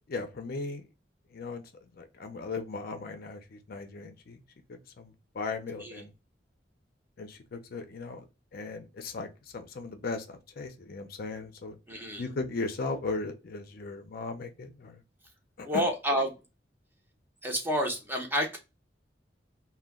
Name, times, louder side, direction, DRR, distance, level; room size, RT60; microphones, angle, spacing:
voice 1, 0.1-0.9 1.3-1.6 2.0-4.4 4.7-6.1 7.2-8.3 8.5-11.8 12.2-15.0 15.6-15.8, left 3 dB, 55° left, 0.5 m, -37 dB
voice 2, 11.9-12.2 15.6-16.3 17.4-18.6, equal, 10° right, 0.6 m, -29 dB
2.2 x 2.1 x 3.4 m
head